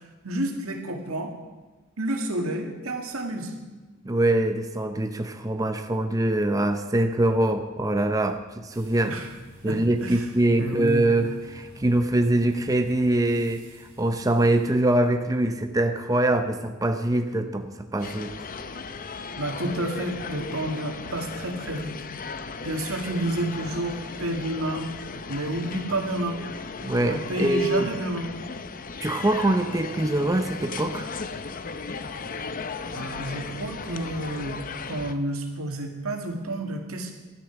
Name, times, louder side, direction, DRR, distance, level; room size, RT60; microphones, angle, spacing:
voice 1, 0.2-1.3 2.0-3.5 9.1-9.3 9.7-10.3 10.6-11.1 19.4-22.0 22.6-24.9 25.3-26.4 27.0-28.3 32.9-34.6 34.9-37.1, right 1 dB, 85° right, 3 dB, 2.0 m, -30 dB
voice 2, 4.0-9.2 9.6-18.3 26.8-27.9 29.0-31.1, right 1 dB, 15° right, 7 dB, 0.6 m, -24 dB
sound 1, 8.7-14.7, right 1 dB, 45° right, 3.6 m, -49 dB
sound 2, 18.0-35.1, left 4 dB, 40° left, 0.7 m, -36 dB
12.0 x 10.0 x 7.1 m, 1.2 s
head